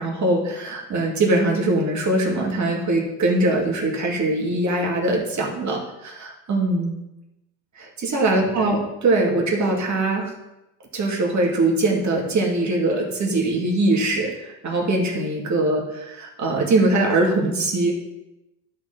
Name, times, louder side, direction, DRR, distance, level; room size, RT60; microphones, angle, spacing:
voice 1, 0.0-6.9 7.8-10.3 10.9-17.9, right 2 dB, 45° right, -1 dB, 2.5 m, -22 dB
11.5 x 4.3 x 4.0 m, 0.92 s
hypercardioid pair, 70°, 41 cm